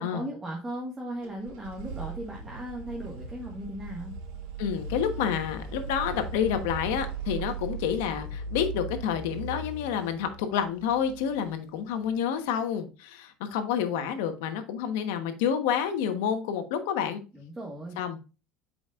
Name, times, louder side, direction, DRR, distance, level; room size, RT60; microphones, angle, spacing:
voice 1, 0.0-4.1 17.3-18.0, right 1 dB, 15° right, -2 dB, 1.6 m, -37 dB
sound 1, 1.2-12.0, right 4 dB, 85° right, 2.9 m, -38 dB
voice 2, 4.6-17.2 18.0-18.2, left 8 dB, 85° left, 7 dB, 1.1 m, -29 dB
7.9 x 5.1 x 2.5 m, 0.31 s
supercardioid pair, 130°, 0 cm